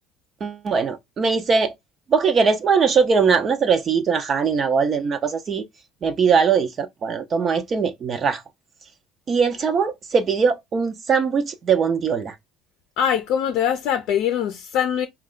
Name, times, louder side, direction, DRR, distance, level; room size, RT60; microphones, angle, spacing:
voice 1, 0.4-1.7 2.1-5.6 6.0-8.4 9.3-12.3, right 5 dB, 35° right, 0.5 m, -21 dB
voice 2, 13.0-15.1, left 9 dB, 65° left, 0.5 m, -22 dB
4.1 x 2.2 x 3.7 m
supercardioid pair, 115°, 0 cm